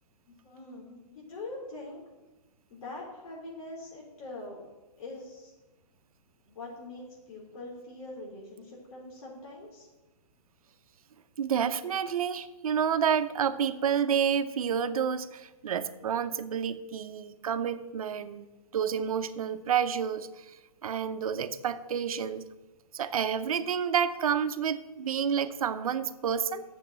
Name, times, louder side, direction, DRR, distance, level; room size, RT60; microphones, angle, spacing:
voice 1, 0.3-2.0 2.7-4.6 5.0-5.5 6.5-9.9, left 2 dB, 70° left, -4 dB, 4.1 m, -43 dB
voice 2, 11.4-18.5 18.7-20.3 20.8-22.4 22.9-26.6, right 8 dB, 70° right, 11 dB, 0.9 m, -29 dB
8.5 x 7.3 x 8.1 m, 1.1 s
hypercardioid pair, 175°, 19 cm